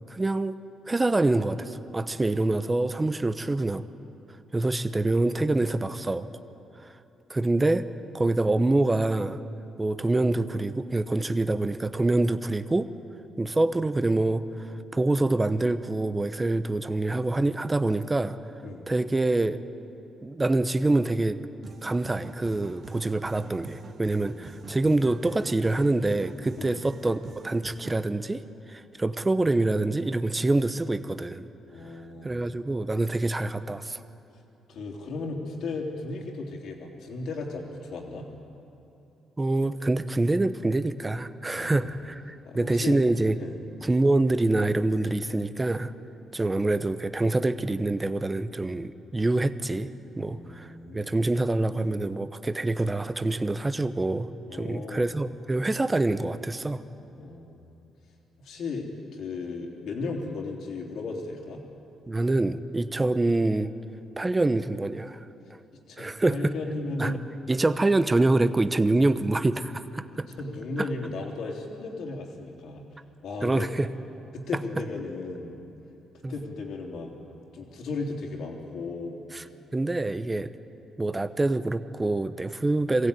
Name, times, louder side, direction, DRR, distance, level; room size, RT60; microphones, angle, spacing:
voice 1, 0.1-0.6 0.9-3.8 4.5-6.3 7.3-7.8 8.1-9.4 9.8-12.9 13.4-18.4 18.9-19.6 20.2-21.4 21.8-28.4 28.7-31.5 32.2-34.0 39.4-43.4 43.8-45.9 46.3-50.7 50.9-56.8 62.1-63.7 64.2-65.6 66.0-66.5 67.0-67.1 67.5-70.3 73.4-73.9 76.2-76.3 79.3-79.4 79.7-80.5 81.0-83.1, right 2 dB, 20° right, 11 dB, 0.8 m, -26 dB
sound 1, 21.6-28.0, right 4 dB, 60° right, 1.7 m, -45 dB
voice 2, 24.2-24.7 26.6-26.8 31.7-32.3 34.7-38.3 41.5-41.9 42.4-43.0 43.4-43.6 50.3-51.2 54.5-55.1 57.1-57.6 58.4-61.6 65.9-67.3 70.3-72.8 73.2-73.7 74.3-75.6 76.3-77.1 77.5-79.2, left 3 dB, 70° left, 1 dB, 3.3 m, -35 dB
22.5 x 16.0 x 9.1 m, 2.9 s
cardioid pair, 90°, 0 cm